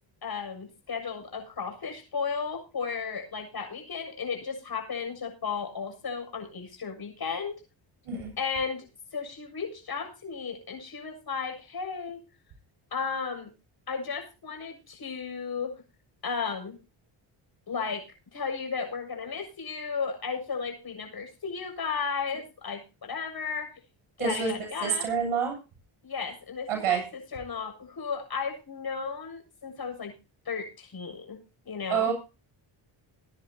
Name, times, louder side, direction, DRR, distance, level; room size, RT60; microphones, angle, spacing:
voice 1, 0.2-7.6 8.4-8.9 9.1-12.2 12.9-13.5 13.9-15.8 16.2-16.8 17.7-18.1 18.3-23.7 24.2-25.1 26.0-27.0 27.3-30.1 30.5-32.1, left 5 dB, 45° left, 4 dB, 7.3 m, -34 dB
voice 2, 24.2-24.5 24.8-25.5 26.7-27.0 31.9-32.1, right 7 dB, 85° right, 3 dB, 7.9 m, -27 dB
22.0 x 10.5 x 2.8 m, 0.30 s
cardioid pair, 70°, 50 cm